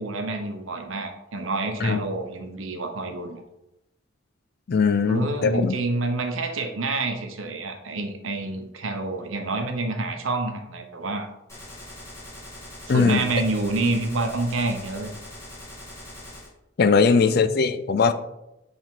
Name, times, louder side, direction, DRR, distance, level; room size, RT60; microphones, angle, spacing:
voice 1, 0.0-3.4 5.1-11.3 12.9-15.1 17.0-17.5, right 2 dB, 85° right, 5 dB, 0.9 m, -28 dB
voice 2, 4.7-5.8 12.9-13.3 16.8-18.1, left 5 dB, 50° left, 12 dB, 0.4 m, -20 dB
Gunshot gunfire, 11.5-16.5, left 1 dB, 15° left, 1.8 m, -42 dB
7.2 x 3.6 x 3.7 m, 0.89 s
head